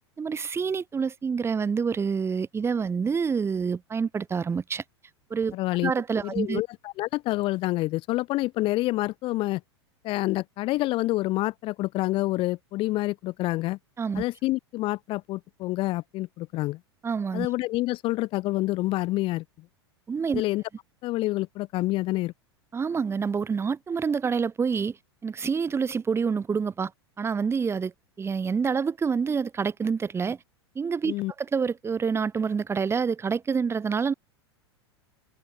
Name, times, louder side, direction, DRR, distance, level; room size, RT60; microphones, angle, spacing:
voice 1, 0.2-4.8 5.3-5.6 5.8-6.6 14.0-14.2 17.0-17.5 20.1-20.4 22.7-25.0 25.2-26.9 27.2-27.9 28.2-30.4 30.7-34.1, right 5 dB, 20° right, 8.0 m, -27 dB
voice 2, 5.5-5.9 6.2-9.6 10.0-13.8 14.1-16.8 17.3-19.4 20.3-20.6 21.0-22.3 31.1-31.3, left 18 dB, 40° left, 2.1 m, -27 dB
figure-of-eight pair, 90°, 14 cm